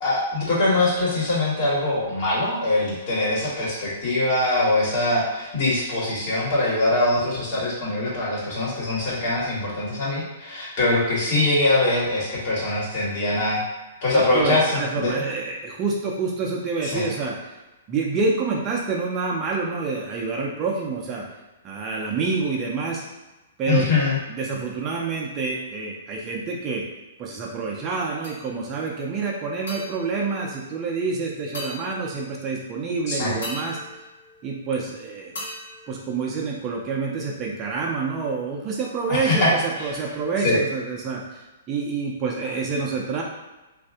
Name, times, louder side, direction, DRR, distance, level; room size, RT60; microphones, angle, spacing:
voice 1, 0.0-13.6 14.0-15.1 16.8-17.0 23.7-24.2 33.1-33.3 39.1-39.5 39.8-39.9 40.4-40.6, left 2 dB, 45° left, -6 dB, 1.4 m, -23 dB
voice 2, 14.1-17.4 17.9-21.2 21.6-23.0 23.6-23.9 24.3-26.8 27.2-33.8 34.4-35.3 35.9-41.4 41.7-43.2, right 4 dB, 25° right, -2 dB, 0.5 m, -27 dB
sound 1, 28.2-28.8 29.7-31.1 31.5-32.6 33.4-34.9 35.4-36.8, left 1 dB, 90° left, 1.3 m, -40 dB
2.5 x 2.5 x 3.5 m, 1.1 s
hypercardioid pair, 140°, 0 cm